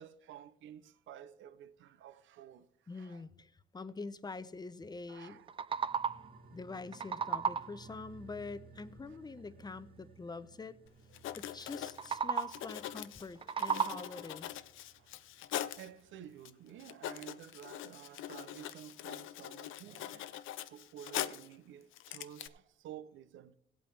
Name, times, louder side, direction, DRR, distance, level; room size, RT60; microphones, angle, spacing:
voice 1, 0.0-2.7 2.9-3.2 5.1-5.5 15.0-15.2 15.8-20.3 20.7-23.6, right 10 dB, 75° right, 0.6 m, -52 dB
voice 2, 2.9-5.4 6.5-10.8 11.4-14.6, left 3 dB, 20° left, 0.6 m, -45 dB
sound 1, 5.3-6.4 6.7-7.9 11.9-12.8 13.2-14.3, right 7 dB, 25° right, 0.3 m, -35 dB
sound 2, 5.7-16.6 16.9-17.0, right 4 dB, 50° right, 1.4 m, -59 dB
Writing, 10.9-11.0 11.1-15.9 16.4-16.5 16.8-21.5 21.9-22.5, left 12 dB, 85° left, 0.6 m, -42 dB
16.5 x 8.4 x 3.3 m
cardioid pair, 90°, 20 cm